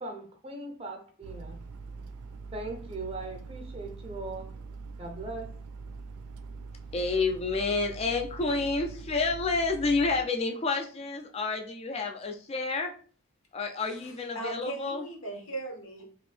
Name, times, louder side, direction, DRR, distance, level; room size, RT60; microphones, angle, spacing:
voice 1, 0.0-1.6 2.5-4.5 5.0-5.5, right 2 dB, 25° right, 3 dB, 0.6 m, -39 dB
sound 1, 1.2-10.2, right 4 dB, 90° right, 0.3 m, -43 dB
voice 2, 6.9-12.9 13.5-15.0, left 3 dB, 30° left, 4 dB, 0.3 m, -29 dB
voice 3, 13.8-16.1, right 2 dB, 70° left, 1 dB, 0.9 m, -39 dB
2.9 x 2.6 x 3.2 m, 0.43 s
head